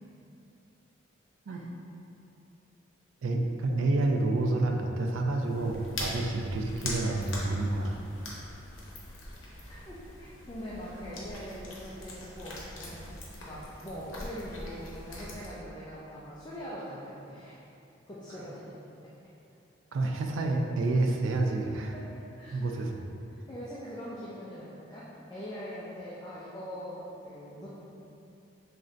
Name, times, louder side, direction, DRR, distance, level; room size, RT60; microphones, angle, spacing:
voice 1, 3.2-8.0 19.9-21.9 22.5-23.0, right 2 dB, 75° right, 2 dB, 0.4 m, -29 dB
sound 1, 5.4-15.5, left 1 dB, 75° left, 0.7 m, -42 dB
voice 2, 9.7-13.0 13.4-17.6 18.1-19.1 21.9-22.7 23.3-27.7, equal, 20° left, -8 dB, 0.4 m, -42 dB
3.2 x 2.6 x 3.8 m, 2.7 s
head